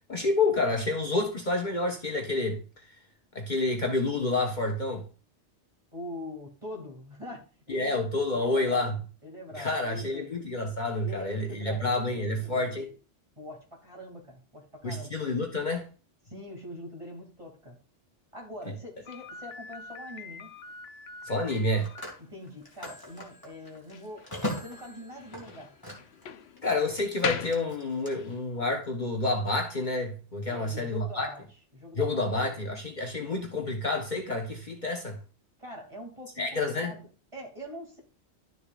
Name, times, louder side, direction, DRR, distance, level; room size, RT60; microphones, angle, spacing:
voice 1, 0.1-2.6 3.3-5.0 7.7-8.9 9.6-12.9 14.8-15.9 18.7-18.8 21.2-21.9 26.6-31.3 31.9-35.2 36.4-37.0, left 2 dB, 45° left, 1.2 m, -29 dB
voice 2, 5.9-8.0 8.3-9.0 9.2-10.3 11.0-12.7 13.4-15.1 16.3-17.8 18.3-20.6 22.2-24.3 24.6-25.7 30.5-31.4 31.7-32.3 35.6-38.0, left 1 dB, 25° right, 2.6 m, -43 dB
Slam, 19.0-28.4, left 6 dB, 65° left, 0.9 m, -41 dB
Telephone, 19.2-19.5 21.4-26.3 26.6-28.1, left 1 dB, 20° left, 2.3 m, -40 dB
12.0 x 6.7 x 2.4 m
omnidirectional pair, 1.2 m